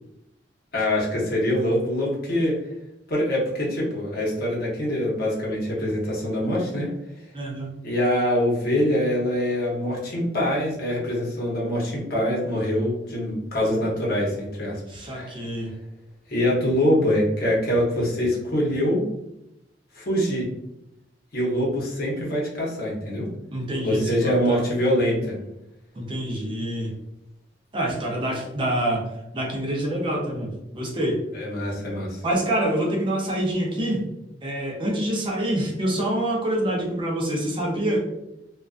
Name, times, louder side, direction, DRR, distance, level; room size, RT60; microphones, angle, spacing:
voice 1, 0.7-2.6 3.1-6.9 7.8-14.8 15.1-15.4 16.3-19.0 19.9-20.5 21.3-23.3 23.8-25.3 31.3-32.2, left 1 dB, 55° left, -4 dB, 0.8 m, -24 dB
voice 2, 7.3-7.7 14.9-15.7 23.5-24.6 26.0-26.9 27.7-29.1 29.3-31.2 32.2-34.0 34.4-38.1, right 1 dB, 30° right, -1 dB, 0.5 m, -26 dB
2.4 x 2.2 x 2.3 m, 0.87 s
head